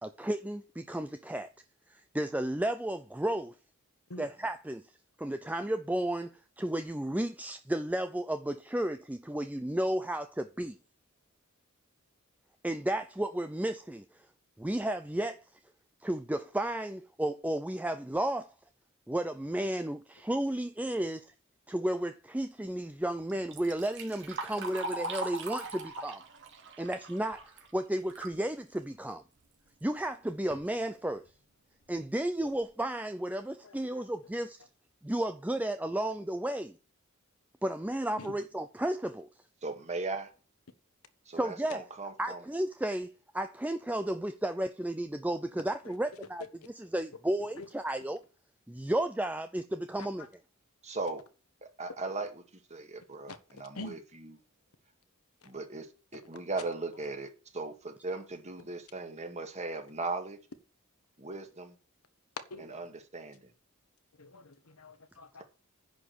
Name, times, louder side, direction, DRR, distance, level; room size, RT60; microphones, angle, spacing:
voice 1, 0.0-1.5 1.9-3.6 4.2-4.9 5.2-10.8 12.6-14.3 14.6-15.5 16.0-18.5 19.1-21.3 21.7-26.2 26.8-29.2 29.8-31.3 31.9-34.6 35.0-36.8 37.6-39.3 41.3-41.8 42.2-48.2 48.7-50.3, right 1 dB, 5° right, 0.5 m, -33 dB
Liquid, 23.3-28.4 28.8-28.9 29.8-29.9 30.3-30.6 31.3-31.4 31.9-32.0 32.4-32.6, right 2 dB, 60° right, 2.5 m, -40 dB
voice 2, 33.6-34.1 38.2-38.3 47.6-47.7 50.0-50.1 53.3-54.0 57.0-57.1 62.5-62.8 64.2-65.4, left 2 dB, 80° left, 1.3 m, -46 dB
voice 3, 39.6-40.3 41.3-42.4 50.8-51.2 51.8-52.4 52.7-54.3 55.4-55.9 56.1-60.4 61.2-61.8 62.6-63.5, right 3 dB, 30° right, 1.9 m, -38 dB
10.5 x 5.1 x 8.1 m
head